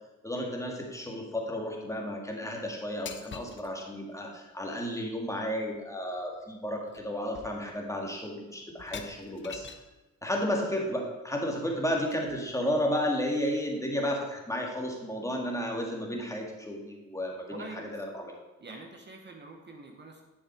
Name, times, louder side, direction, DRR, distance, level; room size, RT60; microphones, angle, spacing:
voice 1, 0.2-9.7 10.2-18.3, equal, 10° left, 0 dB, 2.1 m, -32 dB
sound 1, 3.1-3.7 5.7-5.8 6.2-6.5 6.9-7.1 7.3-7.9 8.8-10.0 11.6-12.6, left 6 dB, 40° left, 0.9 m, -46 dB
voice 2, 17.5-18.0 18.6-20.2, right 3 dB, 35° right, 2 dB, 1.6 m, -45 dB
10.5 x 6.7 x 4.7 m, 1.1 s
cardioid pair, 90°, 30 cm